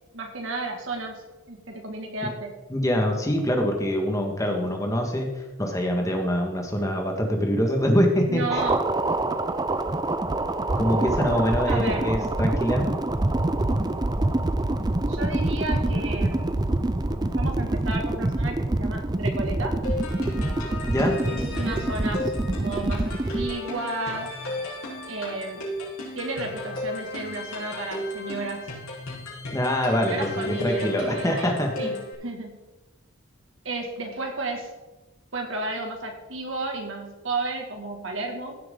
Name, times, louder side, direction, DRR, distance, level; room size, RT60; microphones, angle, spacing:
voice 1, 0.1-1.2 1.5-2.6 8.3-8.8 11.7-12.1 15.0-16.8 17.4-19.8 21.3-24.4 25.1-25.7 26.2-28.7 30.0-32.0 32.2-32.6 33.6-34.7 35.3-38.6, right 2 dB, 70° right, 2 dB, 2.1 m, -33 dB
voice 2, 2.7-5.3 5.6-8.6 10.8-12.9 20.9-21.1 29.5-31.9, equal, 15° left, 2 dB, 1.6 m, -24 dB
sound 1, 8.5-23.5, right 2 dB, 20° right, 0.5 m, -26 dB
sound 2, 19.8-32.1, left 1 dB, 90° left, 4.4 m, -35 dB
16.0 x 7.6 x 3.8 m, 1.1 s
head